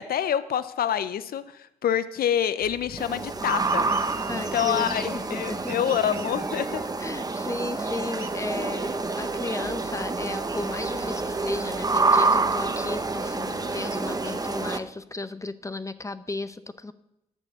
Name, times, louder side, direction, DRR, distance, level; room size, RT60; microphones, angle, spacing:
voice 1, 0.0-3.8 4.3-6.8, left 9 dB, 70° left, 14 dB, 0.6 m, -27 dB
sound 1, 2.6-14.8, left 2 dB, 40° left, 3.1 m, -49 dB
sound 2, 3.0-14.8, right 3 dB, 25° right, 0.9 m, -28 dB
sound 3, 3.5-5.3 5.7-6.8 8.2-8.3, right 10 dB, 85° right, 0.7 m, -44 dB
voice 2, 4.3-5.7 7.0-16.9, left 2 dB, 20° left, 13 dB, 0.7 m, -35 dB
9.8 x 7.0 x 6.8 m, 0.84 s
cardioid pair, 65°, 16 cm